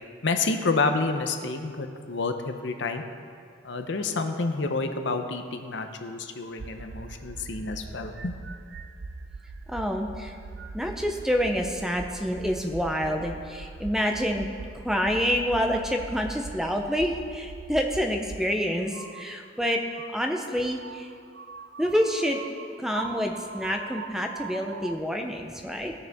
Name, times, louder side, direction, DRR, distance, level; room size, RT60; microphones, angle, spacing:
voice 1, 0.2-3.0 3.6-8.3, left 3 dB, 65° left, 6 dB, 0.7 m, -29 dB
sound 1, 6.6-18.4 18.9-25.0, right 4 dB, 60° right, 0.4 m, -41 dB
voice 2, 9.7-10.3 10.7-14.5 14.8-19.8 20.1-21.1 21.8-22.4 22.8-25.9, equal, ahead, 3 dB, 0.6 m, -27 dB
16.5 x 6.6 x 3.5 m, 2.3 s
head